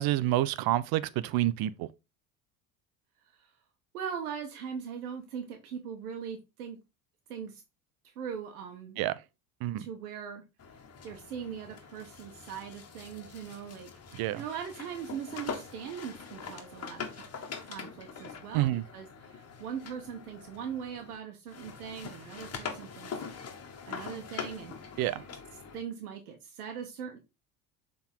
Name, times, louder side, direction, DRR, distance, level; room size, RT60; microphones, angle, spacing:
voice 1, 0.0-1.9 9.0-9.2 9.6-9.9 14.1-14.4 18.5-18.8 25.0-25.2, right 15 dB, 55° right, 0.7 m, -28 dB
voice 2, 3.9-6.8 7.3-7.6 8.0-9.0 9.8-10.4 11.0-13.9 14.2-17.2 17.6-23.1 23.9-25.0 25.7-27.2, right 7 dB, 85° right, 1.2 m, -40 dB
sound 1, 10.6-21.2 21.5-25.8, left 6 dB, 35° left, 1.8 m, -43 dB
7.1 x 3.9 x 3.7 m
hypercardioid pair, 85°, 43 cm